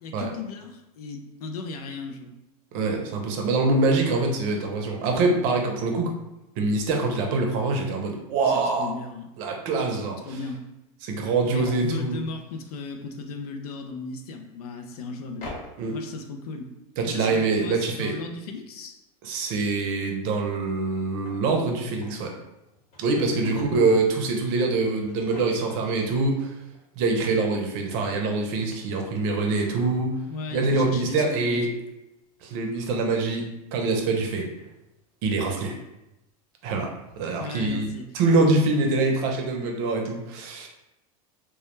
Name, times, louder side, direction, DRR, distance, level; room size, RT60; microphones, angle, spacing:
voice 1, 0.0-2.3 8.4-9.3 9.8-10.6 11.4-15.5 15.9-16.7 17.0-19.0 23.0-23.9 30.3-31.8 37.4-38.1, left 3 dB, 85° left, 5 dB, 0.4 m, -36 dB
voice 2, 2.7-6.1 6.6-8.9 9.4-10.2 11.0-12.2 15.8-16.0 17.0-18.1 19.2-22.3 23.0-26.5 27.0-30.2 30.5-31.7 32.4-34.5 35.2-35.8 36.6-36.9 37.2-37.9 38.1-40.7, right 3 dB, 55° right, 2 dB, 0.6 m, -24 dB
sound 1, 10.8-11.9 14.0-14.1 15.3-16.5 20.4-22.2 22.6-24.0 24.6-25.9 26.3-26.4 26.6-26.8, left 1 dB, 45° left, 1.0 m, -46 dB
2.2 x 2.1 x 3.0 m, 0.91 s
supercardioid pair, 125°, 19 cm